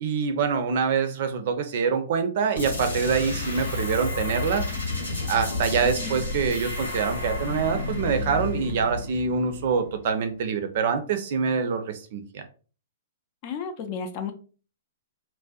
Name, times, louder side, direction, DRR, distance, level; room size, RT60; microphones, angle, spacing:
voice 1, 0.0-4.7 5.3-12.4, right 6 dB, 55° right, 8 dB, 0.4 m, -25 dB
sound 1, 2.6-10.1, left 3 dB, 85° left, 1.1 m, -31 dB
voice 2, 5.8-6.2 13.4-14.3, left 6 dB, 45° left, 7 dB, 0.4 m, -33 dB
2.5 x 2.1 x 2.3 m, 0.38 s
hypercardioid pair, 120°, 0 cm